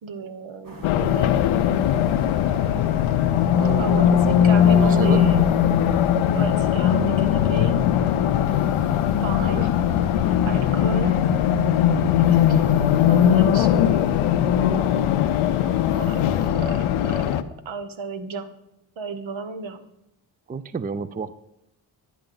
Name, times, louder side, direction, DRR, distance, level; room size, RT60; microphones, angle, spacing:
voice 1, 0.0-1.4 3.8-5.5 6.3-7.7 9.2-9.7 10.4-11.2 12.2-14.1 16.0-17.3 17.6-18.5 19.0-19.8, right 4 dB, 70° right, 9 dB, 1.2 m, -33 dB
sound 1, 0.6-16.5, right 2 dB, 45° right, 2.1 m, -41 dB
Race car auto racing, 0.8-17.4, left 10 dB, 85° left, 0.6 m, -20 dB
voice 2, 3.6-5.3 9.4-9.7 20.5-21.4, right 5 dB, 20° right, 15 dB, 0.5 m, -31 dB
10.5 x 10.5 x 3.9 m, 0.83 s
cardioid pair, 60°, 47 cm